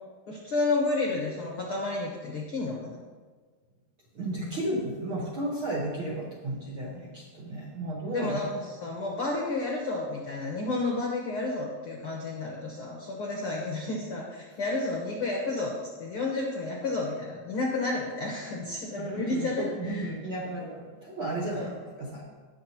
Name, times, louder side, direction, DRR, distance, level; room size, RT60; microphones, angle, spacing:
voice 1, 0.3-3.0 8.1-20.1 21.5-21.7, left 2 dB, 70° left, -2 dB, 1.3 m, -31 dB
voice 2, 4.1-8.4 18.9-22.2, right 1 dB, 65° right, -5 dB, 1.3 m, -33 dB
18.5 x 6.8 x 2.9 m, 1.5 s
omnidirectional pair, 4.2 m